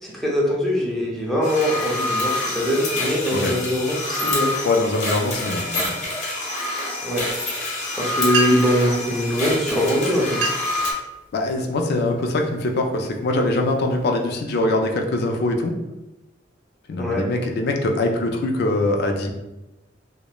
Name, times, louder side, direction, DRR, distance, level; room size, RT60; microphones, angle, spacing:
voice 1, 0.0-4.5 7.0-7.3 7.6-10.4 17.0-17.3, equal, ahead, -5 dB, 0.5 m, -22 dB
sound 1, 1.4-10.9, left 2 dB, 40° left, 0.7 m, -27 dB
voice 2, 4.6-5.8 11.3-15.7 16.9-19.3, left 2 dB, 60° left, 3 dB, 0.3 m, -22 dB
sound 2, 8.2-8.9 9.7-9.9 10.2-10.8 11.3-11.7 12.3-12.6 13.1-14.3, right 3 dB, 65° right, 0.3 m, -29 dB
2.9 x 2.0 x 2.2 m, 0.99 s
head